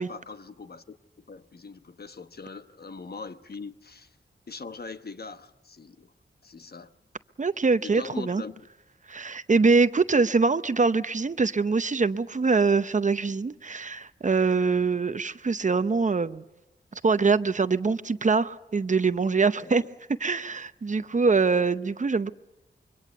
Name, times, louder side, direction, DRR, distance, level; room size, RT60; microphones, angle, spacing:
voice 1, 0.0-4.1 4.5-6.1 6.4-7.0 7.8-8.5 19.6-19.9 21.1-21.2, left 4 dB, 55° left, 1.1 m, -42 dB
voice 2, 7.4-8.4 9.1-16.4 16.9-19.8 20.2-22.3, right 4 dB, 40° right, 0.8 m, -24 dB
26.0 x 23.5 x 6.8 m
wide cardioid pair, 80°, 19 cm